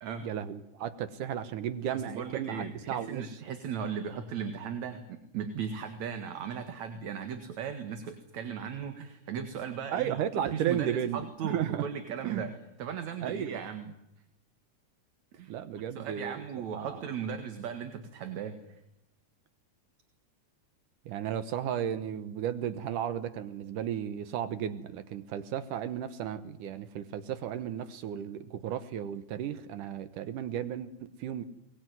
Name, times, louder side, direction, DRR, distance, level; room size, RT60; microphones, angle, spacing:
voice 1, 0.2-3.4 9.9-11.9 12.2-12.5 13.2-13.6 15.5-16.4 16.7-17.0 21.1-31.4, right 10 dB, 80° right, 12 dB, 2.7 m, -34 dB
voice 2, 1.9-12.5 12.8-13.9 15.3-15.5 16.0-18.6, right 7 dB, 65° right, 7 dB, 3.0 m, -37 dB
23.0 x 21.0 x 9.4 m, 0.84 s
omnidirectional pair, 3.7 m